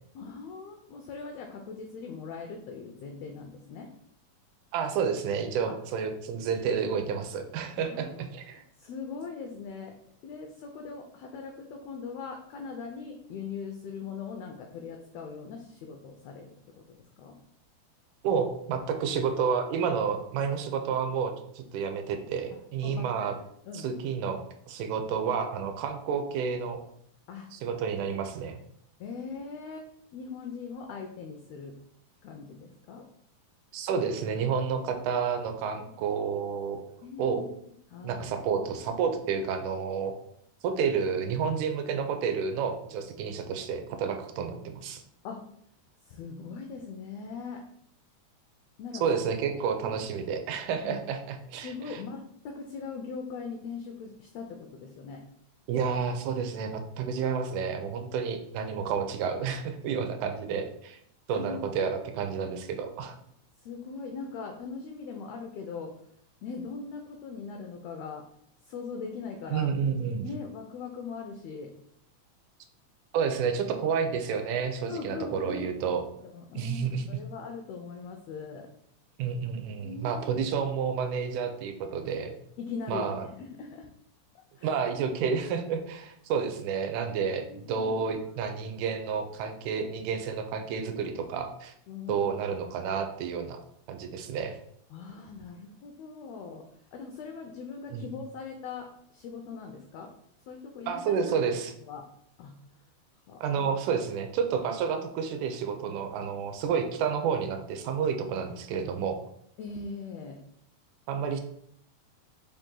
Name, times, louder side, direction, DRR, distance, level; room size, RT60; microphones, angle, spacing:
voice 1, 0.1-3.9 5.7-5.8 7.7-8.3 8.5-10.0 10.2-17.4 20.4-20.5 22.8-23.3 23.6-23.9 27.3-27.5 29.0-29.9 30.1-31.8 32.2-33.1 35.8-36.3 37.0-37.5 37.9-38.3 45.2-45.4 46.0-47.6 48.8-49.0 49.8-50.1 50.8-51.0 51.6-55.2 61.3-61.6 63.6-66.0 66.4-68.3 68.6-69.7 70.2-71.7 74.9-75.8 76.2-78.7 79.8-80.3 82.6-83.9 84.6-84.8 85.4-85.5 87.5-88.2 91.9-92.7 94.9-100.1 100.5-101.4 101.9-102.1 102.4-102.8 103.3-103.7 109.6-110.4, left 5 dB, 90° left, 3 dB, 1.4 m, -41 dB
voice 2, 4.7-8.6 18.2-23.3 23.7-24.4 24.7-26.8 27.5-28.6 33.7-36.8 37.2-37.4 38.0-40.1 40.6-45.0 49.0-52.0 55.7-61.0 61.3-63.2 69.5-70.3 73.1-76.0 76.6-77.2 79.2-82.3 82.9-83.3 84.6-91.7 92.1-93.6 93.9-94.6 97.9-98.0 100.9-101.7 103.4-109.2 111.1-111.4, right 6 dB, 90° right, 6 dB, 2.1 m, -30 dB
5.1 x 2.7 x 3.7 m, 0.70 s
omnidirectional pair, 3.5 m